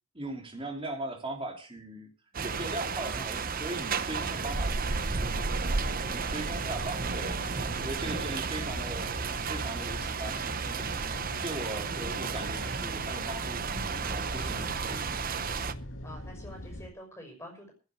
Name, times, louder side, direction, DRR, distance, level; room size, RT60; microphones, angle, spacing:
voice 1, 0.1-2.1 2.4-5.4 6.1-7.4 7.8-10.9 11.4-13.6 14.1-15.2, right 1 dB, 25° right, 3.1 m, -39 dB
sound 1, 2.3-15.7, right 5 dB, 40° right, 0.7 m, -33 dB
sound 2, 4.1-16.9, left 1 dB, 60° left, 2.1 m, -42 dB
voice 2, 6.3-6.7 8.1-8.3 14.6-14.7 16.0-17.7, equal, 10° left, 6.0 m, -47 dB
15.5 x 8.0 x 7.7 m
head